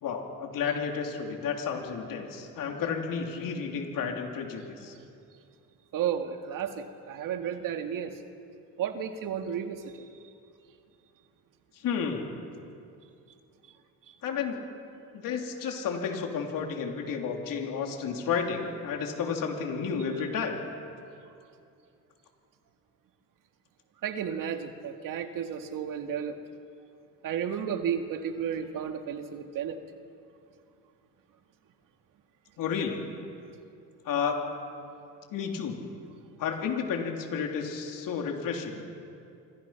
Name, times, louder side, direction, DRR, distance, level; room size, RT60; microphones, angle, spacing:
voice 1, 0.0-4.9 11.7-12.3 14.2-14.6 15.1-20.6 32.6-33.0 34.0-34.4 35.3-35.8 36.4-38.9, left 6 dB, 75° left, 2 dB, 3.4 m, -31 dB
voice 2, 5.9-8.2 8.8-10.0 24.0-26.4 27.2-29.8, right 8 dB, 70° right, 6 dB, 2.0 m, -33 dB
26.5 x 25.0 x 5.9 m, 2.6 s
cardioid pair, 90°, 33 cm